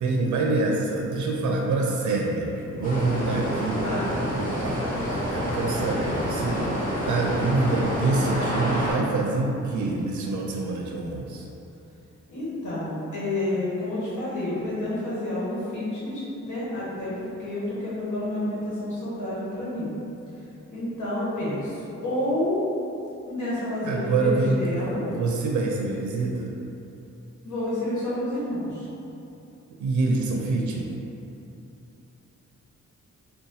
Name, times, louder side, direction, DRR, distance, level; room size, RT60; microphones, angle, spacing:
voice 1, 0.0-3.8 4.3-6.7 7.1-11.4 23.8-24.6 24.8-26.5 29.8-30.9, right 3 dB, 75° right, 0 dB, 0.5 m, -26 dB
sound 1, 2.8-8.9, equal, 25° left, 1.1 m, -28 dB
voice 2, 3.8-4.1 12.3-19.9 20.7-22.6 23.2-25.1 27.4-28.9, left 1 dB, 75° left, -8 dB, 1.3 m, -29 dB
3.9 x 2.2 x 4.0 m, 2.9 s
wide cardioid pair, 140°, 30 cm